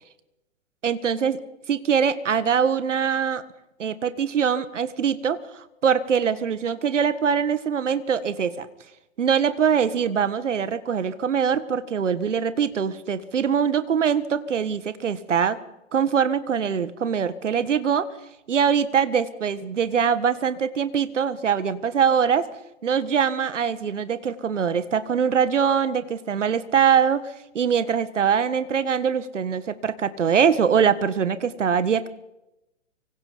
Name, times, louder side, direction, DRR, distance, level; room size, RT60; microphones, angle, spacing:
voice 1, 0.8-1.4 1.7-3.4 3.8-8.7 9.2-15.6 15.9-18.1 18.5-22.5 22.8-32.1, right 7 dB, 70° right, 14 dB, 1.7 m, -23 dB
25.0 x 24.5 x 5.2 m, 0.93 s
figure-of-eight pair, 120°, 37 cm